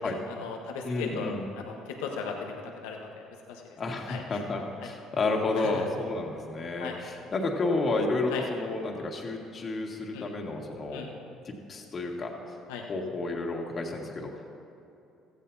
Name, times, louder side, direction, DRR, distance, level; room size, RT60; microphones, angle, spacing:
voice 1, 0.0-3.6 4.1-4.4 5.6-5.9 6.8-7.0 8.3-8.4 10.1-10.3 10.9-11.1 12.7-12.8, left 5 dB, 90° left, 1 dB, 1.3 m, -38 dB
voice 2, 0.8-1.5 3.8-11.0 11.5-12.4 12.9-14.3, left 3 dB, 40° left, 0 dB, 2.1 m, -31 dB
16.5 x 14.5 x 2.8 m, 2.7 s
supercardioid pair, 75°, 0 cm